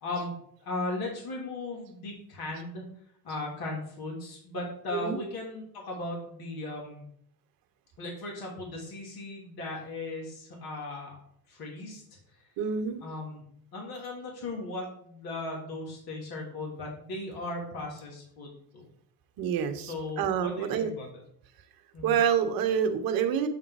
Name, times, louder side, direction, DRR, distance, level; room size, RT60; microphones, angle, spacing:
voice 1, 0.0-0.3 0.6-2.8 3.2-7.0 8.0-11.1 11.5-12.0 13.0-13.4 13.7-18.9 19.8-21.2 21.9-22.2, left 2 dB, 50° left, -1 dB, 2.8 m, -37 dB
voice 2, 12.6-13.0 19.4-20.9 22.0-23.5, right 8 dB, 45° right, 8 dB, 1.1 m, -27 dB
8.5 x 3.8 x 4.8 m, 0.68 s
hypercardioid pair, 90°, 49 cm